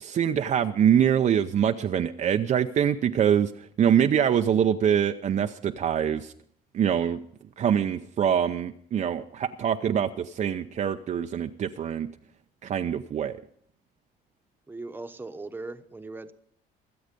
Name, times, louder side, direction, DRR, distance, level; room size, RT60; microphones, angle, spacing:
voice 1, 0.0-6.3 6.7-7.2 7.6-12.1 12.6-13.4, right 9 dB, 45° right, 7 dB, 0.6 m, -24 dB
voice 2, 14.7-16.3, right 3 dB, 10° right, 8 dB, 1.0 m, -39 dB
23.5 x 8.0 x 5.2 m, 0.64 s
cardioid pair, 110°, 17 cm